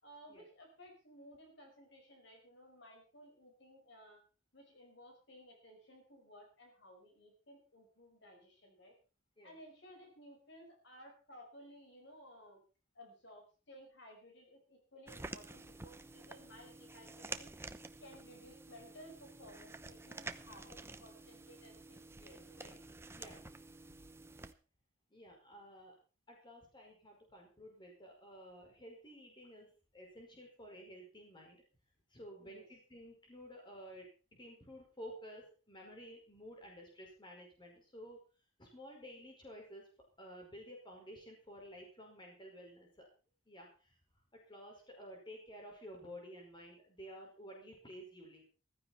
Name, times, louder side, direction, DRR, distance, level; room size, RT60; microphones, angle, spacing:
voice 1, 0.0-4.2 4.5-8.9 9.4-12.6 13.0-17.5 18.0-22.8 32.4-32.7, equal, 60° left, 2 dB, 5.4 m, -57 dB
sound 1, 15.1-24.5, right 3 dB, 10° right, 0.8 m, -50 dB
voice 2, 25.1-26.0 26.3-31.6 32.1-38.2 38.6-39.9 40.2-43.1 43.4-44.0 44.3-48.4, equal, 25° left, 0 dB, 5.2 m, -53 dB
15.0 x 14.5 x 4.4 m, 0.35 s
head